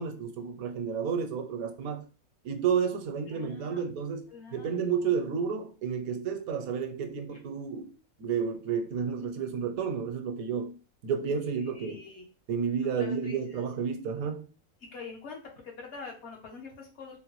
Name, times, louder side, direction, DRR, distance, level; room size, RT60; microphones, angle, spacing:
voice 1, 0.0-2.1 2.4-7.9 8.2-10.8 11.0-12.1 12.5-14.4, right 6 dB, 80° right, 1.0 m, -31 dB
voice 2, 3.3-3.8 4.3-4.8 11.6-12.2 12.8-13.6 14.9-17.2, left 4 dB, 60° left, 0.9 m, -45 dB
3.7 x 2.1 x 2.9 m
omnidirectional pair, 1.5 m